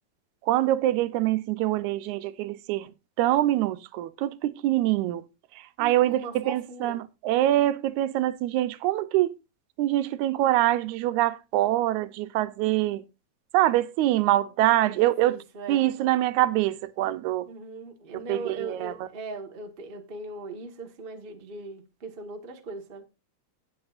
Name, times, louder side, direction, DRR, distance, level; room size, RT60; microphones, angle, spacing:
voice 1, 0.4-2.9 3.2-5.2 5.6-7.0 7.2-9.4 9.8-13.0 13.5-15.4 15.7-17.5 18.3-18.9, right 14 dB, 85° right, 2.1 m, -24 dB
voice 2, 5.8-7.0 14.8-15.9 17.5-23.1, right 3 dB, 40° right, 0.7 m, -39 dB
17.5 x 7.8 x 2.4 m
omnidirectional pair, 3.3 m